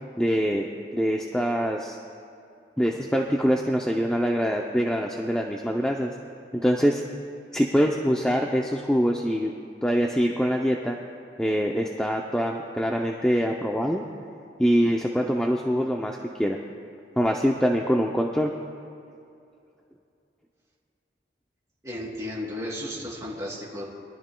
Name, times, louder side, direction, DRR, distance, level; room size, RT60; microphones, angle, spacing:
voice 1, 0.2-0.7 0.9-2.0 2.8-6.1 6.5-7.0 7.5-9.5 9.8-11.0 11.4-14.0 14.6-16.6 17.2-18.5, equal, 5° left, 0 dB, 0.5 m, -24 dB
voice 2, 21.8-23.9, left 1 dB, 20° right, -4 dB, 2.7 m, -34 dB
23.0 x 12.5 x 2.2 m, 2.6 s
head